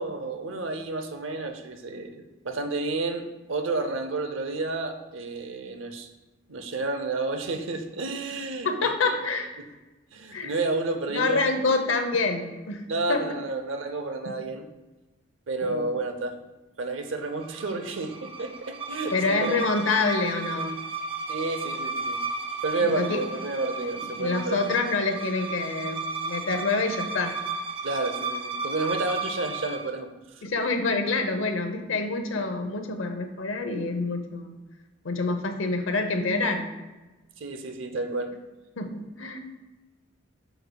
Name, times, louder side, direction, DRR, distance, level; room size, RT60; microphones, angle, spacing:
voice 1, 0.0-6.1 6.5-9.3 10.1-11.4 12.9-14.7 15.5-16.4 16.8-19.8 21.3-22.2 22.6-24.6 27.8-30.1 30.3-30.5 37.4-38.3, right 3 dB, 80° right, 6 dB, 0.8 m, -31 dB
voice 2, 8.6-9.5 10.3-10.5 11.1-13.3 14.2-14.4 15.6-15.9 19.1-20.7 22.8-23.2 24.0-27.3 30.4-34.5 35.0-36.7 38.8-39.4, left 3 dB, 85° left, 7 dB, 0.8 m, -27 dB
sound 1, 17.2-29.9, right 3 dB, 25° right, 0.5 m, -34 dB
7.9 x 6.2 x 2.3 m, 1.2 s
head